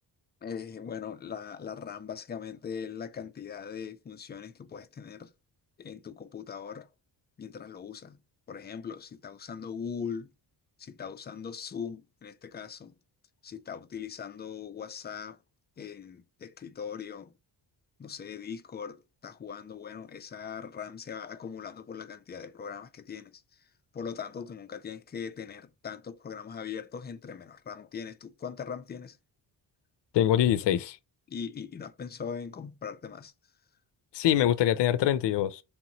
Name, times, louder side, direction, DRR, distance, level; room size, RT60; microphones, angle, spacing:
voice 1, 0.4-5.3 5.8-6.9 7.4-8.2 8.5-10.3 10.8-12.9 13.4-15.4 15.8-17.3 18.0-23.4 23.9-29.2 31.3-33.3, left 7 dB, 25° left, 0.3 m, -40 dB
voice 2, 30.1-31.0 34.1-35.6, left 11 dB, 75° left, 0.5 m, -24 dB
3.5 x 2.9 x 3.9 m
wide cardioid pair, 130°, 42 cm